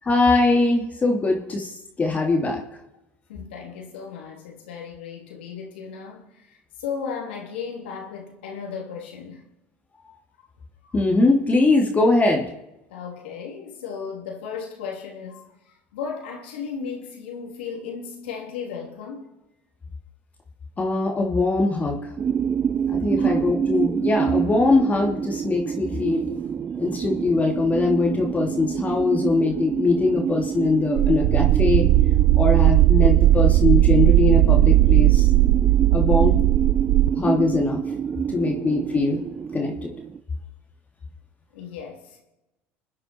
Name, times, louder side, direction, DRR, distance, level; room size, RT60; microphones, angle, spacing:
voice 1, 0.1-1.6 2.0-2.6 10.9-12.5 20.8-22.0 22.9-26.2 26.8-31.9 32.4-35.3 35.9-36.4 37.2-37.8 38.3-39.2 39.5-39.9, left 3 dB, 25° left, 2.9 m, -21 dB
voice 2, 3.3-9.5 10.8-11.0 12.9-15.5 15.9-19.3 23.1-23.4 41.5-42.2, left 6 dB, 85° left, 3.3 m, -35 dB
sound 1, 22.2-40.2, right 8 dB, 35° right, 0.6 m, -28 dB
sound 2, 31.0-37.1, right 16 dB, 70° right, 0.9 m, -17 dB
27.0 x 9.9 x 4.6 m
hypercardioid pair, 85°, 6 cm